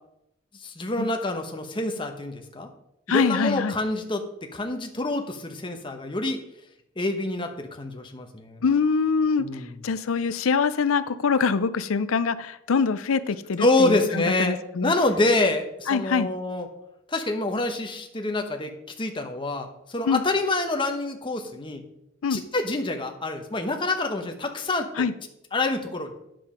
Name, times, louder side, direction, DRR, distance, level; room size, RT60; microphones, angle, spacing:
voice 1, 0.6-2.7 3.1-6.4 7.0-8.6 9.4-9.7 13.6-14.6 14.8-16.7 17.1-21.8 22.3-24.9 25.5-26.1, left 2 dB, 25° left, 4 dB, 1.0 m, -26 dB
voice 2, 3.1-3.7 8.6-14.9 15.9-16.3 20.1-20.2 22.2-22.4 25.0-25.1, left 5 dB, 80° left, 15 dB, 0.5 m, -24 dB
9.7 x 7.7 x 5.0 m, 0.83 s
head